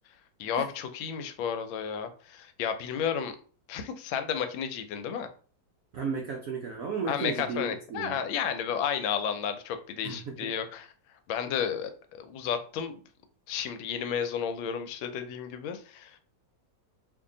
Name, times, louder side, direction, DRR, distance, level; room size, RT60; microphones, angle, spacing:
voice 1, 0.4-3.3 3.7-5.3 7.1-10.9 11.3-13.0 13.5-16.2, left 8 dB, 90° left, 8 dB, 1.3 m, -32 dB
voice 2, 5.9-8.2 10.0-10.5, right 4 dB, 80° right, 1 dB, 0.7 m, -34 dB
2.9 x 2.7 x 3.7 m, 0.42 s
omnidirectional pair, 2.1 m